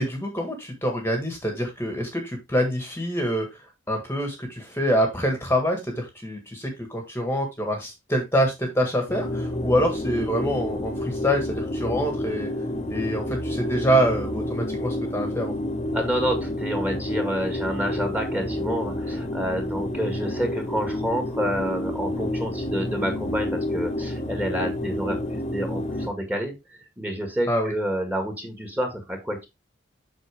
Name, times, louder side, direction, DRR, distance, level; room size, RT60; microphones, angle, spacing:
voice 1, 0.0-3.6 3.9-12.5 12.9-15.5 27.5-27.7, equal, 10° left, 3 dB, 1.6 m, -25 dB
sound 1, 9.1-26.1, left 1 dB, 30° left, 1.2 m, -29 dB
voice 2, 15.9-29.5, equal, 10° right, 4 dB, 1.9 m, -29 dB
7.9 x 5.7 x 3.4 m, 0.22 s
head